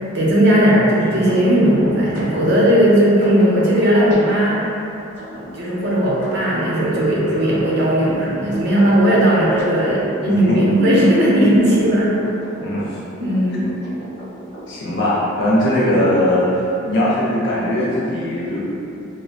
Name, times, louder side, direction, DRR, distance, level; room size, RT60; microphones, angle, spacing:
voice 1, 0.1-4.7 5.2-12.2 13.2-13.7, equal, 55° right, -6 dB, 0.6 m, -16 dB
sound 1, 1.3-18.0, equal, 35° left, 1.0 m, -37 dB
voice 2, 10.3-10.6 12.6-13.0 14.7-18.6, left 1 dB, 60° left, -8 dB, 0.5 m, -19 dB
2.1 x 2.1 x 3.6 m, 2.7 s
head